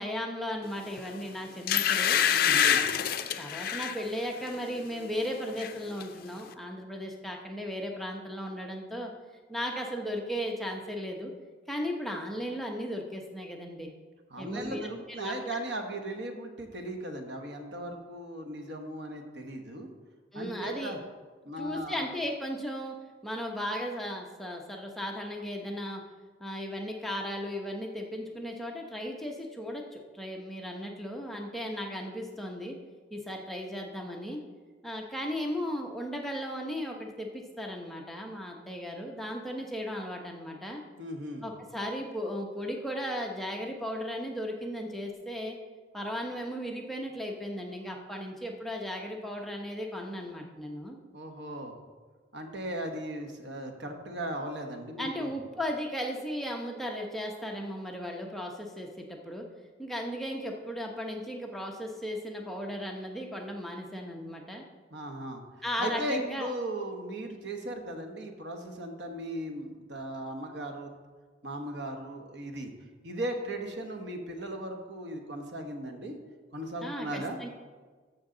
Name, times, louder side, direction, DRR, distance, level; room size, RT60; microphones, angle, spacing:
voice 1, 0.0-2.2 2.6-2.8 3.2-9.1 9.5-11.3 11.7-13.9 14.4-14.9 15.2-15.3 20.3-20.9 21.6-26.0 26.4-32.8 33.1-34.4 34.8-40.8 41.4-45.6 45.9-51.0 55.0-59.5 59.8-64.6 65.6-66.5 76.8-77.5, equal, ahead, 0 dB, 0.8 m, -36 dB
sound 1, 1.0-1.1 1.7-4.0 4.5-4.7 5.0-5.7 6.0-6.1, left 9 dB, 55° left, 0.5 m, -26 dB
voice 2, 2.3-2.8 14.3-19.9 20.3-21.0 21.4-22.1 41.0-41.4 51.1-51.7 52.3-55.3 64.9-65.4 65.8-70.9 71.4-72.7 73.0-76.1 76.5-77.4, right 1 dB, 65° right, 4 dB, 1.2 m, -37 dB
13.5 x 6.5 x 3.8 m, 1.4 s
head